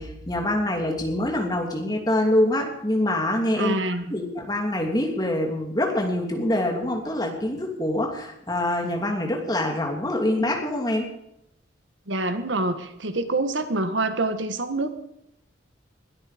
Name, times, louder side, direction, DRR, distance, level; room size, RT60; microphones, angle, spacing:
voice 1, 0.0-3.8 4.1-11.1, left 1 dB, 20° left, 1 dB, 2.9 m, -25 dB
voice 2, 3.6-4.1 12.1-14.9, right 2 dB, 90° right, 9 dB, 1.5 m, -26 dB
21.0 x 13.0 x 5.2 m, 0.81 s
head